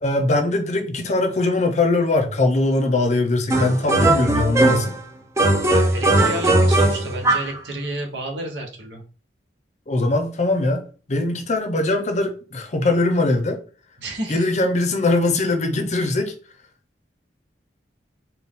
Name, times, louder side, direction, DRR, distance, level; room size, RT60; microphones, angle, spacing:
voice 1, 0.0-4.9 9.9-10.8 11.1-13.6 14.3-16.3, left 2 dB, 40° left, 0.6 m, -21 dB
sound 1, 3.5-5.0 5.4-7.6, right 2 dB, 15° right, 0.5 m, -18 dB
voice 2, 5.6-9.0 14.0-14.5, right 1 dB, 80° right, 1.0 m, -31 dB
4.2 x 2.2 x 3.6 m
head